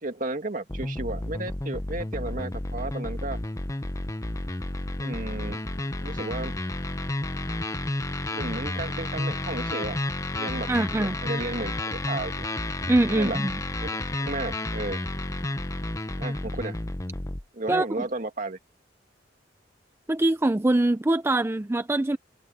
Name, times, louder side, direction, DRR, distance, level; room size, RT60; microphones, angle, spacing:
voice 1, 0.0-3.4 5.0-5.6 6.0-6.5 8.3-10.0 10.3-10.7 11.0-12.5 13.1-13.4 13.8-13.9 14.2-15.0 16.2-16.8 17.5-18.6, right 2 dB, 45° right, 2.2 m, -33 dB
sound 1, 0.7-17.4, left 2 dB, 15° left, 0.7 m, -31 dB
voice 2, 10.7-11.2 12.9-13.6 17.7-17.9 20.1-22.2, right 2 dB, 15° right, 0.4 m, -23 dB
head